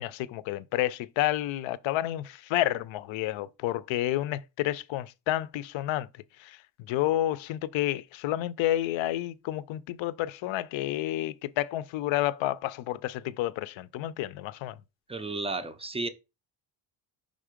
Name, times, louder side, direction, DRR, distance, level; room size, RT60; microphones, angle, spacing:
voice 1, 0.0-6.1 6.4-6.6 6.9-14.8, left 14 dB, 70° left, 0.6 m, -30 dB
voice 2, 15.1-16.1, right 2 dB, 15° right, 0.4 m, -33 dB
5.4 x 3.7 x 5.0 m
cardioid pair, 145°, 49 cm